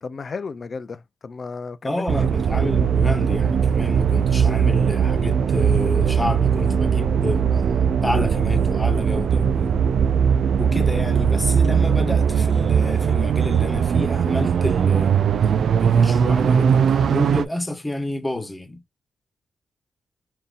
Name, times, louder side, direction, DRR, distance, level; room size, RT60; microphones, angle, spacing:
voice 1, 0.0-2.1, left 4 dB, 45° left, 0.5 m, -33 dB
voice 2, 1.8-7.5 8.0-9.7 10.6-15.2 15.8-18.8, left 1 dB, 15° left, 1.1 m, -29 dB
sound 1, 2.1-17.4, right 7 dB, 75° right, 0.3 m, -19 dB
5.3 x 2.8 x 2.4 m
wide cardioid pair, 115°, 0 cm